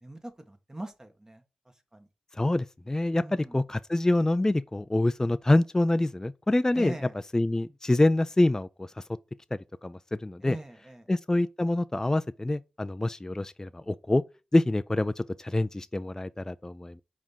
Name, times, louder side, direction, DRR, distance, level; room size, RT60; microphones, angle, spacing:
voice 1, 0.0-1.4 1.9-2.1 3.1-3.6 6.7-7.2 10.4-11.1, right 1 dB, 20° right, 1.4 m, -41 dB
voice 2, 2.3-7.0 7.3-9.0 9.8-10.6 11.1-14.2 14.5-17.0, left 2 dB, 20° left, 0.4 m, -26 dB
5.0 x 3.5 x 5.6 m
cardioid pair, 40°, 3 cm